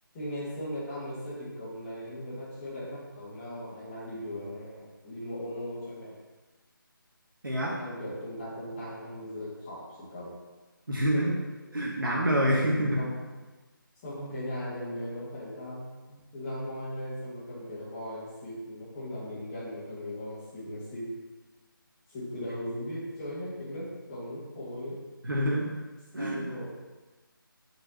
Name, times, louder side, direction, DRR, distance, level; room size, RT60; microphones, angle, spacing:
voice 1, 0.1-6.2 7.8-10.4 13.0-13.2 14.0-21.1 22.1-25.0 26.1-26.7, left 1 dB, 15° left, -10 dB, 1.9 m, -38 dB
voice 2, 7.4-7.8 10.9-11.4 11.7-13.0 25.2-25.7 26.1-26.5, equal, 70° right, -4 dB, 1.8 m, -27 dB
5.9 x 4.9 x 6.3 m, 1.2 s
figure-of-eight pair, 160°, 12 cm